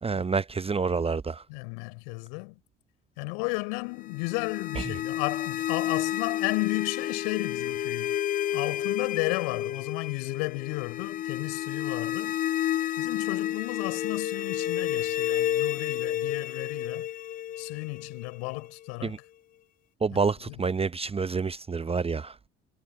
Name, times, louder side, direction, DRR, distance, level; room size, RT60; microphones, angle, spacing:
voice 1, 0.0-1.4 19.0-19.2 20.0-22.3, right 4 dB, 20° right, 0.8 m, -28 dB
voice 2, 1.5-2.6 3.2-8.1 8.5-12.3 13.0-17.1 17.6-19.2 20.1-20.6, left 38 dB, 70° left, 3.9 m, -33 dB
sound 1, 4.0-18.9, left 11 dB, 30° left, 0.4 m, -31 dB
figure-of-eight pair, 55°, 31 cm